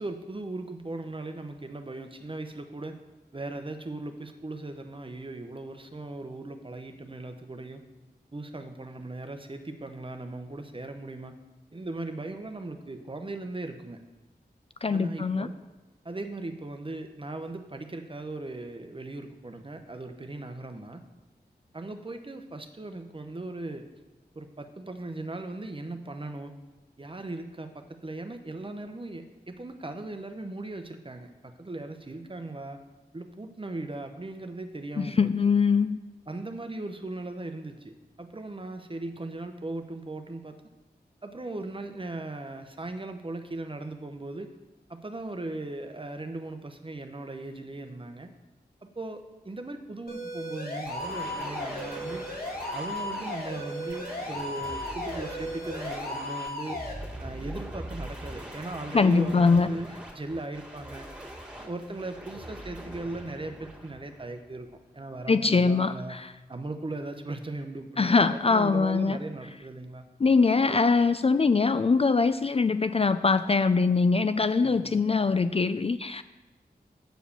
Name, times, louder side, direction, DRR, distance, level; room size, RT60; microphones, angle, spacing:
voice 1, 0.0-3.0 3.3-7.8 8.3-11.4 11.7-14.0 14.9-15.5 16.0-21.0 21.7-23.9 24.3-26.5 27.0-32.8 33.1-35.3 36.3-40.6 41.2-44.5 44.9-48.3 48.8-52.2 52.7-56.8 57.2-59.9 60.1-61.1 61.6-66.2 66.5-70.0 70.7-70.9 74.6-75.0, right 2 dB, 30° right, 7 dB, 0.9 m, -38 dB
voice 2, 14.8-15.5 35.0-36.0 58.9-59.8 65.3-66.3 68.0-69.2 70.2-76.2, left 4 dB, 35° left, 12 dB, 0.4 m, -23 dB
sound 1, 50.1-56.9, left 1 dB, 60° left, 2.3 m, -35 dB
sound 2, 50.9-64.7, equal, 10° right, 2.2 m, -42 dB
9.0 x 4.8 x 7.0 m, 1.1 s
wide cardioid pair, 60°, 17 cm